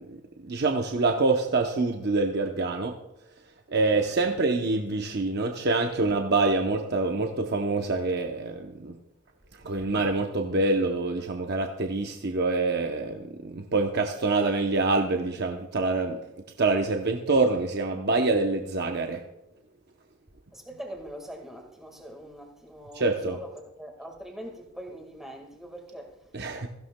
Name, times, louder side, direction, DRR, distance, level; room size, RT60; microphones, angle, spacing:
voice 1, 0.0-3.0 3.7-9.0 9.6-16.2 16.6-19.2 22.9-23.4 26.3-26.7, right 3 dB, 50° right, 0.7 m, -26 dB
voice 2, 3.9-4.4 20.5-26.3, equal, ahead, 1.7 m, -43 dB
17.0 x 14.5 x 2.2 m
head